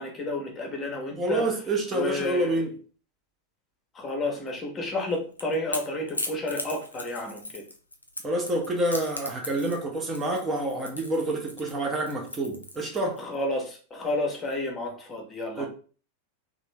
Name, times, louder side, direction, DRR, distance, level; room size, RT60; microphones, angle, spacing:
voice 1, 0.0-1.5 1.9-2.6 3.9-7.6 13.2-15.7, left 2 dB, 20° left, 0.8 m, -31 dB
voice 2, 1.2-2.7 8.2-13.2 15.6-15.7, right 1 dB, 20° right, 0.7 m, -28 dB
Crackle / Crack, 5.0-13.2, left 2 dB, 80° left, 0.5 m, -37 dB
3.0 x 2.5 x 3.2 m
figure-of-eight pair, 90°, 0 cm